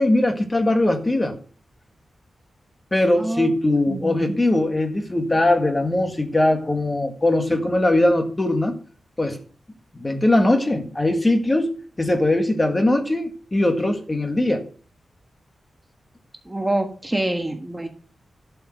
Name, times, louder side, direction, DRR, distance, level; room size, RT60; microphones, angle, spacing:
voice 1, 0.0-1.4 2.9-8.8 9.2-9.4 9.9-11.7 12.0-14.6, left 1 dB, 20° left, 5 dB, 1.8 m, -20 dB
voice 2, 3.2-3.5 3.9-4.4 16.4-17.9, right 1 dB, 15° right, 4 dB, 1.4 m, -26 dB
11.5 x 5.6 x 6.6 m, 0.42 s
wide cardioid pair, 105°, 0 cm